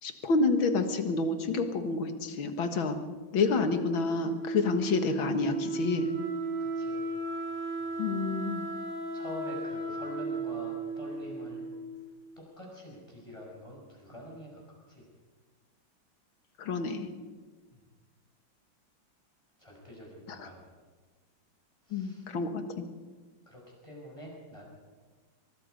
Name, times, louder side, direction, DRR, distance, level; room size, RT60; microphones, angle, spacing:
voice 1, 0.0-3.0 3.3-6.1 8.0-8.7 16.6-17.1 20.3-20.5 21.9-22.8, left 4 dB, 80° left, 7 dB, 2.4 m, -29 dB
Wind instrument woodwind instrument, 3.4-12.2, right 3 dB, 90° right, 7.1 m, -35 dB
voice 2, 6.6-7.0 7.8-7.9 9.1-11.7 12.4-14.6 14.9-15.0 17.7-17.8 19.6-20.7 21.9-22.2 23.5-24.7, left 1 dB, 15° left, -1 dB, 6.3 m, -46 dB
23.0 x 22.5 x 5.2 m, 1.4 s
omnidirectional pair, 2.1 m